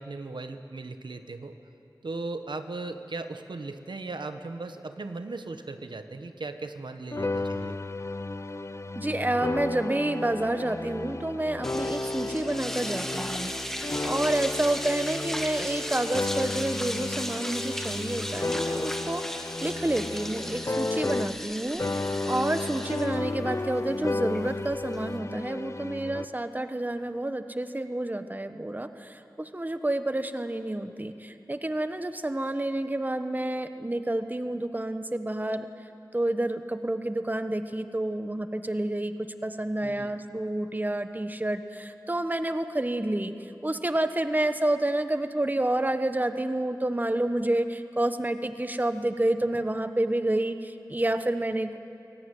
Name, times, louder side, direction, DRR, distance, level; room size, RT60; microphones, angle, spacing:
voice 1, 0.0-1.5 2.0-7.8 39.8-40.1, right 3 dB, 85° right, 8 dB, 1.1 m, -37 dB
sound 1, 7.1-21.5 21.8-26.2, left 2 dB, 40° left, 0.6 m, -33 dB
voice 2, 8.9-13.5 14.0-35.7 36.1-51.8, right 1 dB, 20° right, 9 dB, 1.0 m, -29 dB
sound 2, 11.6-25.2, equal, 5° left, 2.0 m, -36 dB
24.5 x 17.0 x 9.2 m, 2.8 s
wide cardioid pair, 55°, 8 cm